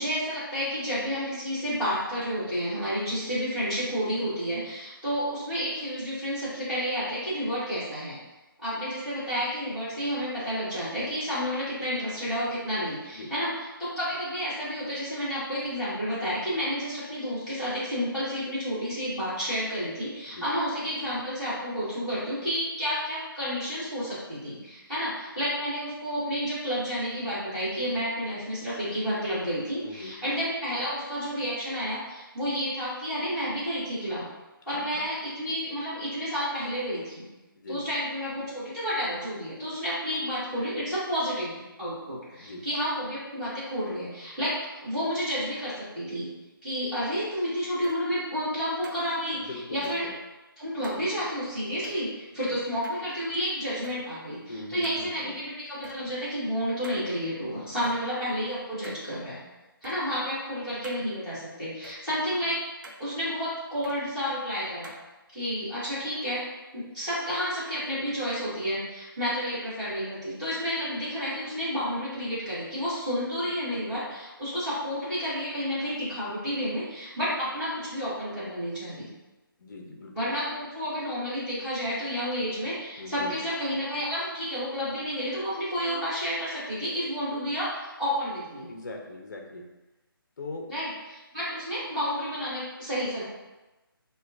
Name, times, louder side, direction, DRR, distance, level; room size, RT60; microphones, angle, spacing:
voice 1, 0.0-8.2 8.6-34.3 34.7-37.2 37.7-46.3 46.6-49.4 49.7-50.1 50.6-59.4 59.8-62.6 63.0-64.9 65.3-66.4 66.7-79.1 80.1-88.7 90.7-93.2, equal, 5° right, -17 dB, 1.4 m, -30 dB
voice 2, 29.8-30.1 34.7-35.0 37.6-37.8 42.4-42.6 49.3-50.1 52.4-52.6 54.5-55.3 79.6-80.3 83.0-83.3 88.7-89.7 90.4-90.7, left 2 dB, 50° left, 2 dB, 0.5 m, -40 dB
sound 1, 47.8-48.0 48.8-49.1 49.8-50.0 50.8-51.0 51.8-52.0 52.8-53.4 53.8-54.0 54.8-55.1 55.8-56.0 56.8-57.0 57.8-58.0 58.8-59.1 59.8-60.0 60.8-61.0 61.8-62.0 62.8-63.1 63.8-64.0 64.8-65.0, right 2 dB, 55° right, 0.5 m, -46 dB
4.2 x 2.2 x 2.4 m, 1.1 s
figure-of-eight pair, 165°, 12 cm